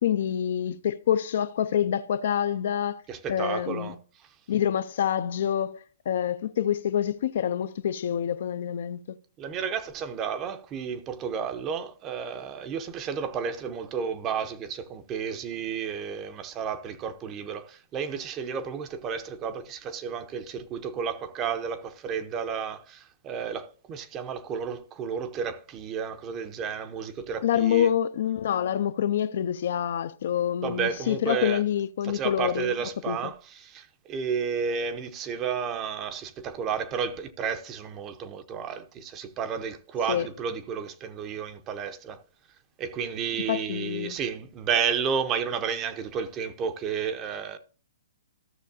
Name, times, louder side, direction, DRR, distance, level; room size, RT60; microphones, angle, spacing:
voice 1, 0.0-3.0 3.3-3.9 4.5-9.2 27.4-32.7 33.1-33.3 40.1-40.3 43.5-44.2, left 10 dB, 60° left, 0.4 m, -27 dB
voice 2, 3.1-4.3 9.4-27.9 30.6-31.6 32.0-42.2 42.8-47.6, right 6 dB, 25° right, 0.7 m, -32 dB
14.0 x 6.3 x 2.7 m
hypercardioid pair, 145°, 0 cm